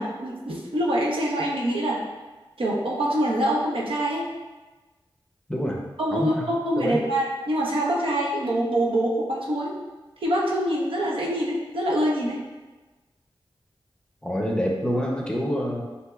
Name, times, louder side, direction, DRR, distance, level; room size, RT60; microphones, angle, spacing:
voice 1, 0.0-2.0 2.6-4.3 6.0-9.7 10.2-12.4, right 1 dB, 75° right, -3 dB, 0.8 m, -25 dB
voice 2, 5.5-5.8 6.1-6.4 6.8-7.0 14.2-15.8, equal, 10° left, -1 dB, 0.6 m, -26 dB
6.3 x 2.7 x 2.3 m, 1.2 s
wide cardioid pair, 75°, 9 cm